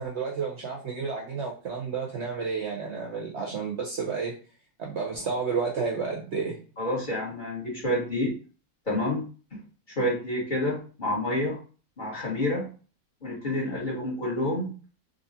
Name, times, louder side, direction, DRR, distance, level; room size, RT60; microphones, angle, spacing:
voice 1, 0.0-4.3 4.8-6.6, right 5 dB, 55° right, 1 dB, 0.8 m, -31 dB
voice 2, 6.8-8.3 8.9-9.2 9.5-9.6 9.9-11.6 12.0-12.7 13.2-14.7, left 1 dB, 30° left, -5 dB, 1.7 m, -28 dB
3.8 x 2.7 x 2.7 m, 0.36 s
omnidirectional pair, 1.6 m